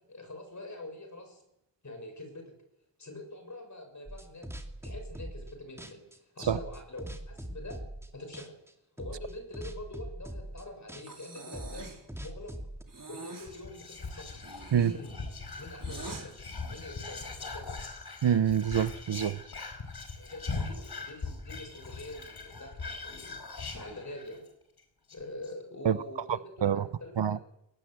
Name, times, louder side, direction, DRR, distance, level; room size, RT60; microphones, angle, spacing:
voice 1, 0.1-1.4 1.8-2.5 3.0-4.5 4.8-6.0 6.4-7.8 8.1-8.6 9.0-12.5 13.1-14.4 14.8-15.2 15.6-16.3 16.7-17.8 20.2-24.4 25.1-27.4, left 2 dB, 40° left, 6.8 m, -45 dB
sound 1, 4.1-5.5 5.8-8.1 8.3-8.7 9.0-12.8, right 1 dB, 5° right, 2.4 m, -42 dB
Breathing, 11.0-12.1 12.9-13.5 14.3-16.3, right 3 dB, 45° right, 4.3 m, -45 dB
Whispering, 13.4-24.5 24.8-24.9 25.1-25.5, left 4 dB, 60° left, 4.7 m, -41 dB
voice 2, 18.2-19.4 25.8-26.0 26.6-26.8 27.2-27.4, right 8 dB, 70° right, 0.9 m, -26 dB
22.0 x 18.5 x 8.1 m
wide cardioid pair, 105°, 44 cm